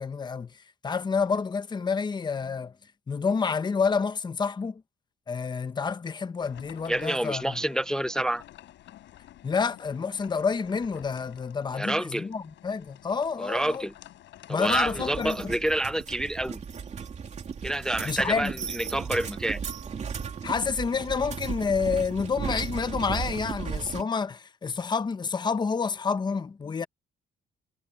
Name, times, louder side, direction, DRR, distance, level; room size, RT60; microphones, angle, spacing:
voice 1, 0.0-2.8 3.1-4.8 5.3-7.6 9.4-13.9 14.5-15.4 18.0-18.5 20.4-26.9, left 5 dB, 25° left, 0.8 m, -29 dB
sound 1, 6.4-15.2, left 13 dB, 90° left, 3.9 m, -51 dB
voice 2, 6.9-8.4 11.8-12.3 13.4-13.9 14.5-16.6 17.6-19.6, right 1 dB, 5° left, 0.3 m, -28 dB
sound 2, 14.6-24.0, right 6 dB, 35° right, 2.8 m, -35 dB
cardioid pair, 150°, 19 cm